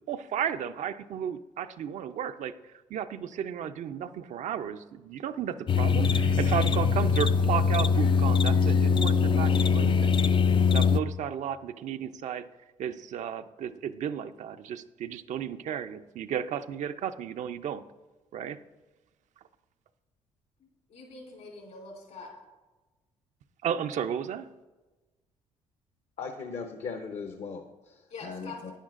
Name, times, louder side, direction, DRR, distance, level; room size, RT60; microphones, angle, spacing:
voice 1, 0.1-10.1 10.7-12.5 12.8-17.8 18.3-18.6 23.6-24.5, right 9 dB, 60° right, 10 dB, 0.5 m, -33 dB
sound 1, 5.7-11.0, left 5 dB, 35° left, 0.4 m, -22 dB
voice 2, 20.9-22.3 28.1-28.7, left 3 dB, 75° left, 0 dB, 3.2 m, -44 dB
voice 3, 26.2-28.7, left 5 dB, 55° left, 4 dB, 0.8 m, -38 dB
10.0 x 9.8 x 2.5 m, 1.2 s
supercardioid pair, 65°, 14 cm